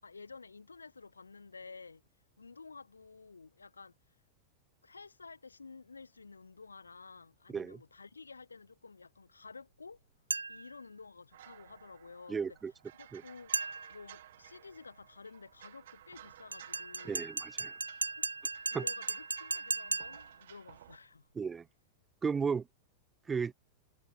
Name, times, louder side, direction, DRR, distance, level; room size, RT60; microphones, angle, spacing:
voice 1, 0.0-2.0 2.4-4.0 4.8-10.0 10.5-12.6 13.0-13.5 13.9-17.3 18.2-18.3 18.7-21.3, left 4 dB, 75° left, 5.3 m, -52 dB
voice 2, 7.5-7.8 12.3-12.7 13.1-13.2 17.0-17.7 18.7-18.8 21.4-21.7 22.2-22.7 23.3-23.5, right 5 dB, 15° right, 0.5 m, -34 dB
sound 1, 10.3-10.7 13.5-14.0 16.5-20.3, right 3 dB, 80° right, 0.4 m, -36 dB
sound 2, 11.3-21.0, right 12 dB, 60° right, 4.4 m, -56 dB
figure-of-eight pair, 90°, 0 cm